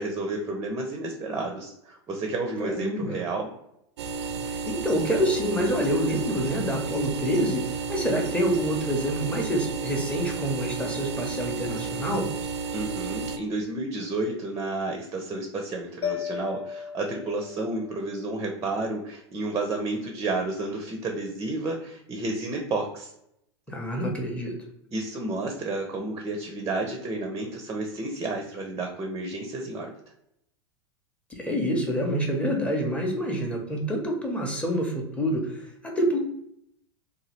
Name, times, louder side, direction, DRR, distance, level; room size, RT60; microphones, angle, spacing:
voice 1, 0.0-3.5 12.7-23.1 24.9-29.9, right 2 dB, 20° right, 2 dB, 0.5 m, -31 dB
voice 2, 2.6-3.2 4.4-12.3 23.7-24.5 31.3-36.2, equal, 10° left, 0 dB, 0.8 m, -27 dB
sound 1, 4.0-13.4, right 5 dB, 75° right, 0.4 m, -32 dB
Mallet percussion, 16.0-18.1, left 8 dB, 50° left, 0.4 m, -34 dB
2.8 x 2.3 x 3.1 m, 0.76 s
hypercardioid pair, 95°, 15 cm